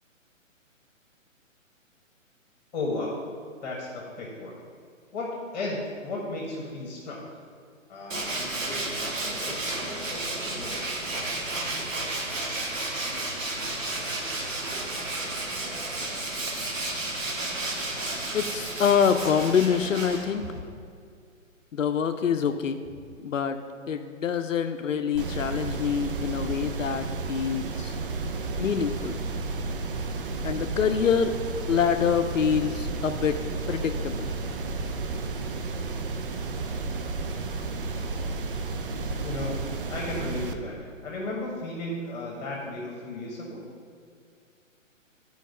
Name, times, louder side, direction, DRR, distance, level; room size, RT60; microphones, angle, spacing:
voice 1, 2.7-3.2 3.6-4.5 5.1-7.4 7.9-10.9 39.2-43.6, left 2 dB, 30° left, -3 dB, 1.4 m, -35 dB
Tools, 8.1-20.6, right 2 dB, 70° right, 1.6 m, -32 dB
voice 2, 18.3-20.6 21.7-22.8 23.2-23.6 23.9-27.9 28.6-29.2 30.4-31.3 31.7-33.4 33.7-34.3, left 7 dB, 70° left, 8 dB, 0.6 m, -25 dB
sound 1, 25.2-40.5, right 3 dB, 45° right, 0.6 m, -32 dB
9.1 x 4.7 x 5.3 m, 2.2 s
figure-of-eight pair, 135°, 40 cm